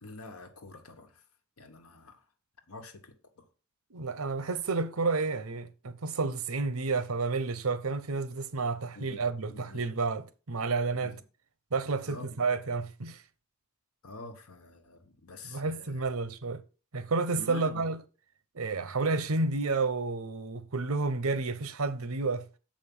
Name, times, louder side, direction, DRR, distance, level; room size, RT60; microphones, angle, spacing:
voice 1, 0.0-1.2 1.6-2.2 2.7-3.5 8.3-8.4 8.9-9.9 10.9-11.2 12.0-12.4 14.0-16.1 17.3-17.9, left 2 dB, 90° left, 1.3 m, -47 dB
voice 2, 3.9-10.2 10.5-11.1 11.7-13.2 15.5-16.6 16.9-18.0 18.5-22.5, right 3 dB, 80° right, 0.8 m, -30 dB
7.3 x 5.2 x 5.4 m
head